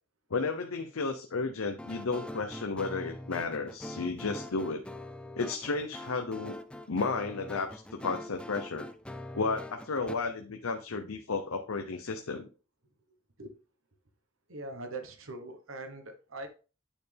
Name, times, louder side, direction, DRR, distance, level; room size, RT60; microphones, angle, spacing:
voice 1, 0.3-4.9 5.4-6.6 6.9-8.9 9.3-12.5, left 4 dB, 80° left, 6 dB, 0.7 m, -33 dB
sound 1, 1.8-10.1, left 1 dB, 5° left, 0.5 m, -43 dB
voice 2, 14.5-16.5, right 2 dB, 70° right, 6 dB, 1.2 m, -41 dB
9.0 x 4.3 x 3.4 m, 0.34 s
head